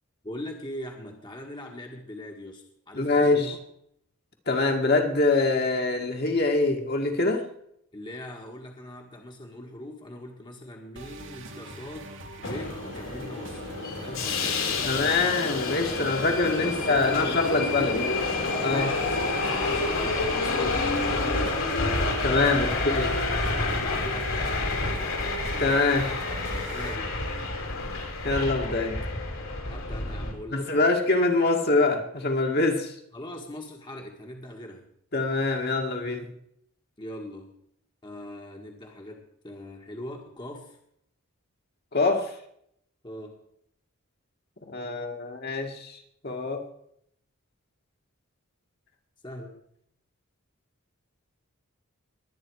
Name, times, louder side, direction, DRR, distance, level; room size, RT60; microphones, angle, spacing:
voice 1, 0.2-3.6 7.9-13.6 14.0-15.4 16.6-18.1 18.6-20.9 21.4-21.7 22.6-22.8 23.3-24.4 24.9-25.2 26.7-27.2 29.6-30.8 33.1-34.8 37.0-37.5 38.0-40.8 43.0-43.4 49.2-49.6, left 1 dB, 20° left, 1 dB, 1.5 m, -41 dB
voice 2, 2.9-3.6 4.5-7.4 14.8-18.0 18.6-18.9 22.2-23.1 25.6-26.1 27.8-27.9 28.2-29.0 30.5-32.9 35.1-36.3 41.9-42.3 44.7-46.0 46.2-46.6, left 3 dB, 45° left, 2 dB, 1.9 m, -24 dB
sound 1, 11.0-27.0, right 1 dB, 55° right, 1.9 m, -43 dB
Subway metro underground, 12.4-30.3, left 3 dB, 65° left, 3.0 m, -29 dB
22.0 x 9.0 x 4.8 m, 0.72 s
head